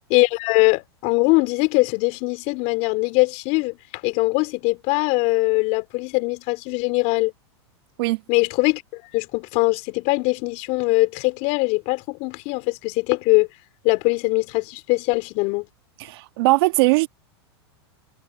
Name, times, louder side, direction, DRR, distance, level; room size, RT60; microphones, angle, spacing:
voice 1, 0.1-7.3 8.3-13.5 13.8-15.6, left 26 dB, 50° left, 3.8 m, -21 dB
voice 2, 16.0-17.1, right 22 dB, 60° right, 1.8 m, -19 dB
hypercardioid pair, 115°, 14 cm